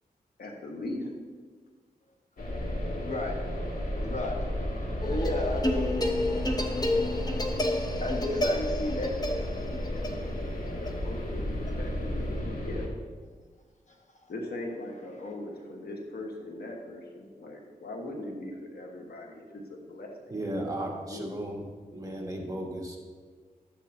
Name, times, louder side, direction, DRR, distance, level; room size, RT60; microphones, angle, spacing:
voice 1, 0.4-1.1 9.9-12.8 14.3-20.3 20.7-21.2, left 1 dB, 85° left, 1 dB, 1.4 m, -40 dB
sound 1, 2.4-12.9, left 1 dB, 65° left, 1.8 m, -33 dB
voice 2, 3.0-3.4 4.0-4.4 5.0-6.0 8.0-9.1, left 2 dB, 50° left, 1 dB, 1.4 m, -32 dB
sound 2, 5.0-12.4, left 1 dB, 25° left, 0.9 m, -31 dB
voice 3, 20.3-21.6 21.9-23.0, right 1 dB, 20° right, -1 dB, 1.9 m, -35 dB
12.5 x 9.1 x 2.8 m, 1.5 s
cardioid pair, 70°, 16 cm